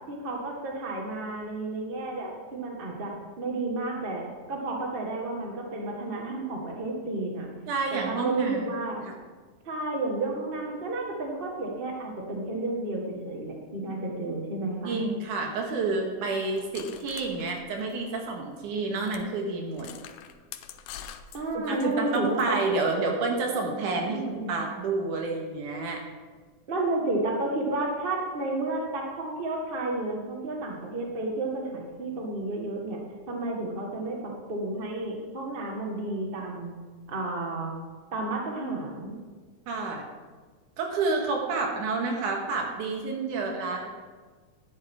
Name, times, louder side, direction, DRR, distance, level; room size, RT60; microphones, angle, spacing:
voice 1, 0.1-3.1 3.4-4.2 4.5-7.5 8.0-9.1 9.6-15.0 21.3-22.6 24.1-24.6 26.7-33.0 33.3-36.7 37.1-37.7 38.1-39.1, right 2 dB, 30° right, 0 dB, 1.1 m, -31 dB
voice 2, 7.7-8.8 9.1-9.2 14.8-19.9 21.5-26.0 39.7-40.1 40.8-43.9, right 3 dB, 85° right, 1 dB, 3.0 m, -29 dB
sound 1, 16.6-18.4 18.7-18.8 19.1-19.3 19.7-22.5, left 9 dB, 85° left, 2.1 m, -45 dB
12.5 x 10.5 x 3.7 m, 1.4 s
omnidirectional pair, 3.5 m